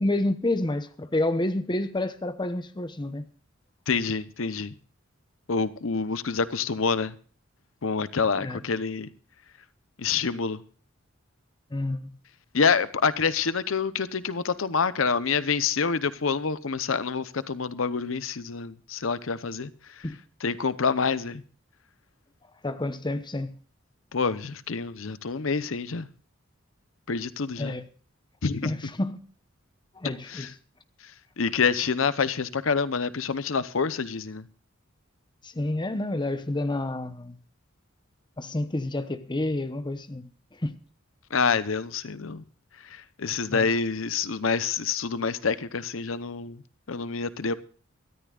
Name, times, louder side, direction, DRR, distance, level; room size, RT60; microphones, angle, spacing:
voice 1, 0.0-3.3 8.4-8.6 11.7-12.2 20.0-20.2 22.6-23.6 27.6-27.9 28.6-29.2 29.9-30.5 35.4-37.4 38.4-40.3 40.6-40.7 43.5-43.7, left 1 dB, 25° left, 0.9 m, -29 dB
voice 2, 3.9-4.7 5.5-7.1 7.8-9.1 10.0-10.6 12.5-19.7 20.4-21.4 24.1-26.1 27.1-27.8 28.4-28.8 30.3-30.5 31.4-34.4 41.3-42.4 42.9-46.6 46.9-47.5, left 5 dB, 80° left, 0.8 m, -27 dB
23.0 x 13.5 x 2.4 m
head